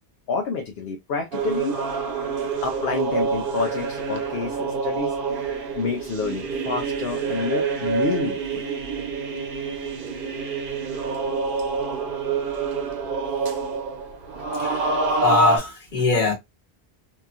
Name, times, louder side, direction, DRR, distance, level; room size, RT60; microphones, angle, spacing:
voice 1, 0.3-1.8 2.6-5.2 5.7-8.7, left 4 dB, 70° left, 0.8 m, -28 dB
sound 1, 1.3-15.6, right 4 dB, 60° right, 0.8 m, -27 dB
voice 2, 14.6-16.3, left 3 dB, 50° left, 1.2 m, -22 dB
2.8 x 2.3 x 2.4 m
omnidirectional pair, 1.1 m